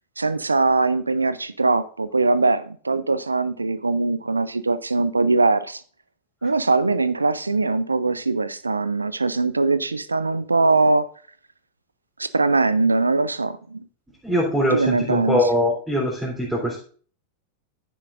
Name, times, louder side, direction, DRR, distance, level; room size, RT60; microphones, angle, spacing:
voice 1, 0.2-5.8 6.4-11.1 12.2-13.8 14.7-15.5, right 3 dB, 80° right, 0.6 m, -21 dB
voice 2, 14.2-16.8, equal, 10° right, 3.7 m, -22 dB
11.0 x 9.7 x 2.6 m
figure-of-eight pair, 90°, 0 cm